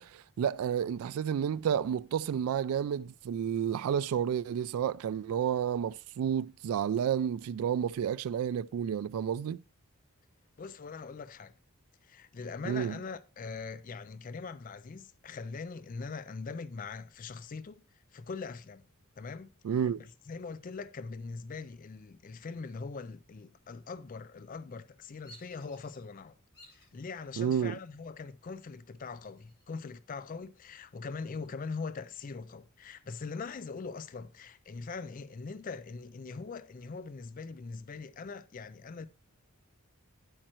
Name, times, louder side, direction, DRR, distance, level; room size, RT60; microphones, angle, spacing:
voice 1, 0.0-9.6 12.6-13.0 19.6-20.0 27.4-27.8, right 8 dB, 80° right, 0.3 m, -31 dB
voice 2, 10.6-11.5 12.0-17.8 18.1-18.8 19.2-19.5 20.0-26.4 26.7-39.1, left 4 dB, 40° left, 0.4 m, -42 dB
Bird vocalization bird call bird song, 25.2-26.0 26.5-27.0 27.5-28.1 29.2-30.0 30.3-30.4 30.9-32.3, equal, 20° left, 5.7 m, -58 dB
8.8 x 8.7 x 3.0 m
head